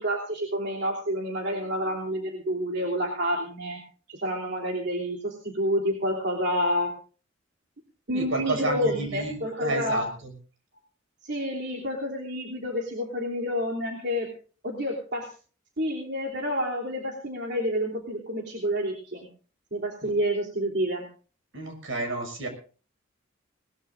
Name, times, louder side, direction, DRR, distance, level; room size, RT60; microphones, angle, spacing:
voice 1, 0.0-3.8 4.1-6.9 8.1-10.1 11.2-14.3 14.6-15.3 15.8-19.3 19.7-21.0, equal, 60° right, -1 dB, 3.2 m, -29 dB
voice 2, 8.1-10.3 20.0-20.1 21.5-22.5, right 2 dB, 80° right, 5 dB, 6.3 m, -31 dB
20.5 x 20.0 x 2.6 m, 0.38 s
head